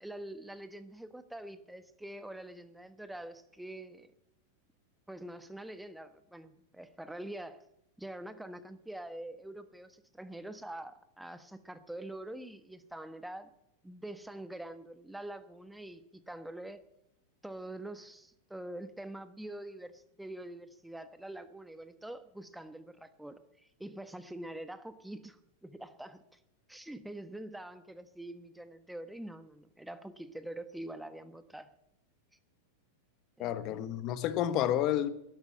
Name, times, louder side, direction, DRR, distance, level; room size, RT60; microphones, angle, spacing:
voice 1, 0.0-4.1 5.1-7.6 8.0-13.5 13.8-16.8 17.4-26.4 26.7-31.7 33.4-33.8, right 1 dB, 5° right, 1.3 m, -45 dB
voice 2, 33.4-35.1, left 11 dB, 45° left, 1.3 m, -30 dB
12.0 x 11.5 x 8.8 m
hypercardioid pair, 110°, 0 cm